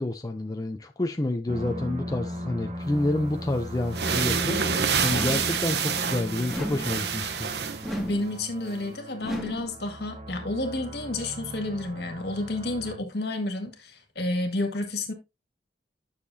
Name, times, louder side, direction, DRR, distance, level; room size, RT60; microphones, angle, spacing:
voice 1, 0.0-7.5, left 1 dB, 20° left, 0.5 m, -29 dB
sound 1, 1.5-13.0, equal, 40° right, 1.3 m, -37 dB
sound 2, 3.3-3.4 3.8-8.0, right 6 dB, 65° right, 0.9 m, -28 dB
sound 3, 5.1-5.7 6.5-7.0 7.8-8.4 9.2-9.8, equal, ahead, 2.0 m, -34 dB
voice 2, 8.0-15.1, left 2 dB, 65° left, 1.9 m, -30 dB
10.0 x 6.6 x 2.7 m
head